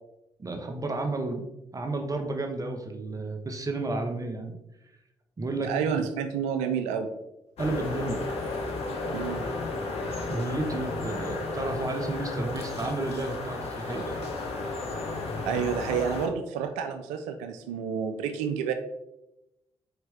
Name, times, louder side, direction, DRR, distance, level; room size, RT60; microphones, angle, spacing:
voice 1, 0.4-1.5 1.7-4.5 5.4-6.1 7.6-8.2 10.3-14.2, right 2 dB, 30° right, 4 dB, 0.8 m, -32 dB
voice 2, 5.6-7.1 9.1-9.5 15.4-18.7, right 7 dB, 80° right, 7 dB, 0.4 m, -29 dB
Park Exterior Ambience, 7.6-16.3, left 3 dB, 60° left, 0.8 m, -33 dB
4.3 x 3.3 x 3.3 m, 0.91 s
hypercardioid pair, 40°, 12 cm